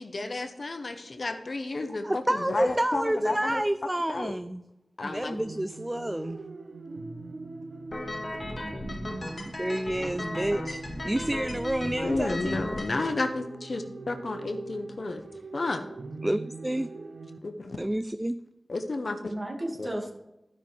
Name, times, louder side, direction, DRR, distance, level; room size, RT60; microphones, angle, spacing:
voice 1, 0.0-3.6 4.1-4.3 5.0-5.4 12.0-15.2 15.5-15.8 17.4-17.8 18.7-19.3 19.8-19.9, left 2 dB, 65° left, 6 dB, 1.0 m, -32 dB
voice 2, 2.0-4.6 5.0-6.4 9.0-9.1 9.5-12.6 16.2-16.9 17.8-18.4, right 1 dB, 20° right, 11 dB, 0.4 m, -29 dB
sound 1, 5.4-17.4, right 3 dB, 75° right, 0.7 m, -42 dB
sound 2, 7.9-13.1, left 1 dB, 50° left, 1.7 m, -36 dB
voice 3, 8.6-9.5 19.3-20.1, right 1 dB, 40° right, 1 dB, 2.1 m, -36 dB
12.5 x 5.9 x 3.4 m, 0.91 s
cardioid pair, 40°, 0 cm